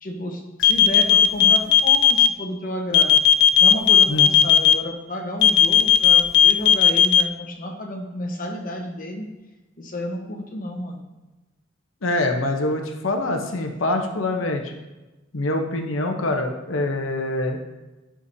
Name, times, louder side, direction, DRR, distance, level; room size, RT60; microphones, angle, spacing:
voice 1, 0.0-3.3 3.6-9.3 9.8-11.0, left 1 dB, 45° left, 2 dB, 1.2 m, -31 dB
keyfob beeps, 0.6-2.3 2.9-4.7 5.4-7.2, left 9 dB, 60° left, 0.5 m, -14 dB
voice 2, 4.1-4.5 12.0-14.7 15.3-17.6, left 2 dB, 85° left, 4 dB, 1.0 m, -25 dB
11.5 x 6.2 x 2.8 m, 1.1 s
head